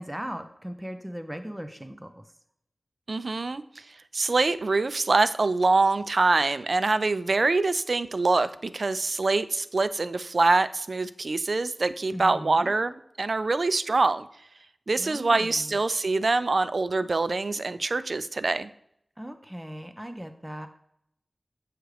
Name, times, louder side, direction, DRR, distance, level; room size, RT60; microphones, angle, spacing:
voice 1, 0.0-2.2 12.1-12.7 15.0-15.8 19.2-20.7, equal, 15° right, 7 dB, 0.5 m, -38 dB
voice 2, 3.1-3.6 4.1-14.3 14.9-18.7, right 3 dB, 70° right, 13 dB, 0.3 m, -24 dB
7.9 x 4.8 x 3.2 m, 0.74 s
wide cardioid pair, 70°, 0 cm